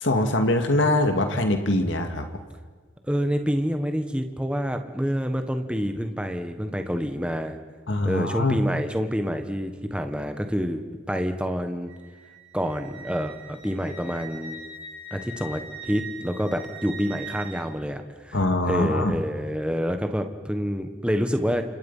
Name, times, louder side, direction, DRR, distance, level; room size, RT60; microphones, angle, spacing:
voice 1, 0.0-2.4 7.9-8.6 18.3-19.2, left 1 dB, 60° left, 6 dB, 2.2 m, -23 dB
voice 2, 3.1-7.6 8.0-11.9 12.5-14.6 15.1-18.4 18.7-21.6, equal, 5° right, 6 dB, 1.4 m, -27 dB
Wind instrument woodwind instrument, 11.9-17.6, right 3 dB, 70° right, 6.3 m, -41 dB
29.0 x 27.0 x 5.7 m, 1.5 s
head